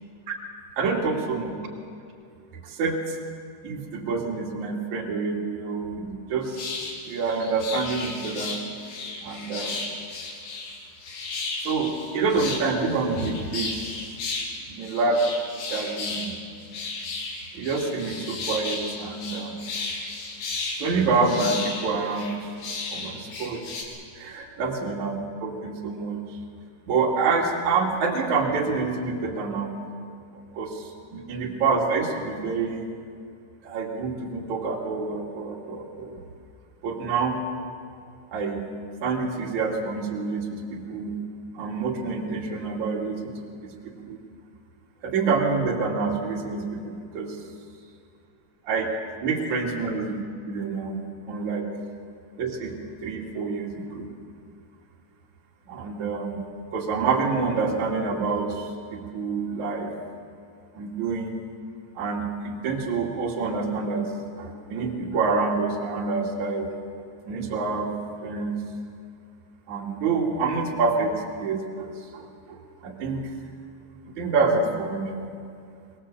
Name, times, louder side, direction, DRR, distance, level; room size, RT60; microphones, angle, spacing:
voice 1, 0.8-1.5 2.6-3.2 3.6-6.7 7.0-8.6 9.2-9.8 11.6-13.9 14.7-15.3 15.7-16.4 17.5-19.6 20.8-22.5 22.9-23.6 24.1-26.3 26.9-29.8 30.5-32.9 33.6-36.2 36.8-37.4 38.3-38.7 39.0-41.2 41.5-44.2 45.0-47.4 48.7-48.9 49.2-51.7 52.4-54.1 55.7-59.9 60.7-61.3 61.9-66.7 67.2-68.5 69.7-73.3 74.1-75.3, right 4 dB, 45° right, 0 dB, 3.3 m, -27 dB
sound 1, 6.5-23.8, left 3 dB, 65° left, 5.1 m, -34 dB
23.0 x 21.5 x 7.6 m, 2.3 s
omnidirectional pair, 5.3 m